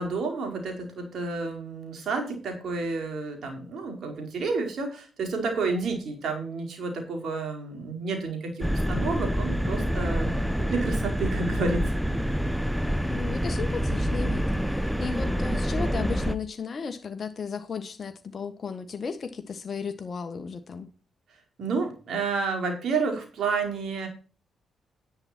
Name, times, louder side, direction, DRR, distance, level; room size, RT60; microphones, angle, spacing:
voice 1, 0.0-11.8 12.2-12.3 21.6-24.1, right 4 dB, 60° right, 4.6 m, -30 dB
sound 1, 8.6-16.4, equal, ahead, 1.1 m, -27 dB
voice 2, 9.6-9.9 13.1-20.9, left 5 dB, 50° left, 1.5 m, -35 dB
10.5 x 8.9 x 4.4 m
hypercardioid pair, 45°, 0 cm